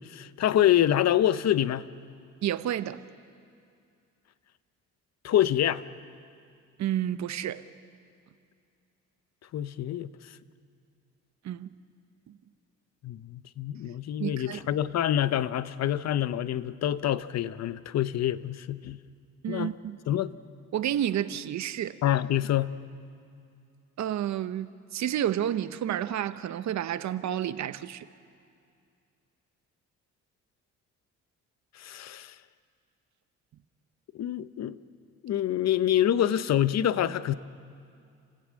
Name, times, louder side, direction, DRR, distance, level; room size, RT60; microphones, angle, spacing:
voice 1, 0.0-1.9 5.2-5.8 9.5-10.1 13.0-19.0 19.5-19.7 20.1-20.3 22.0-22.7 31.7-32.4 34.1-34.8 35.2-37.3, left 11 dB, 60° left, 15 dB, 0.8 m, -26 dB
voice 2, 2.4-3.0 6.8-7.7 11.4-11.7 12.3-12.4 14.2-14.6 19.4-20.0 20.7-22.0 24.0-28.1, right 11 dB, 65° right, 13 dB, 0.9 m, -30 dB
29.5 x 16.0 x 6.4 m, 2.4 s
cardioid pair, 90°, 30 cm